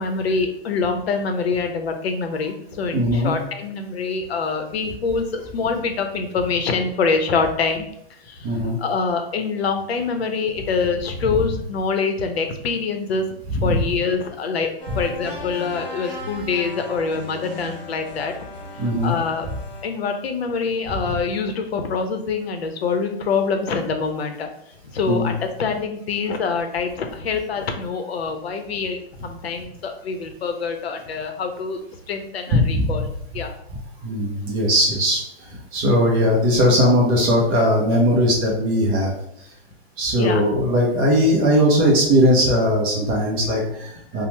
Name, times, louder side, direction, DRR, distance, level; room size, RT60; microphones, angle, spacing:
voice 1, 0.0-7.9 8.2-13.3 13.6-18.3 18.8-19.5 19.8-24.5 24.9-31.8 32.1-33.5 40.2-40.4, left 4 dB, 85° left, 6 dB, 0.6 m, -25 dB
voice 2, 2.9-3.3 8.4-8.8 13.5-13.8 18.8-19.1 25.1-25.3 32.5-33.1 34.0-39.1 40.0-44.2, equal, 15° right, -2 dB, 0.3 m, -19 dB
sound 1, 14.8-19.8, left 2 dB, 25° left, 1.1 m, -36 dB
2.9 x 2.0 x 3.1 m, 0.71 s
hypercardioid pair, 135°, 31 cm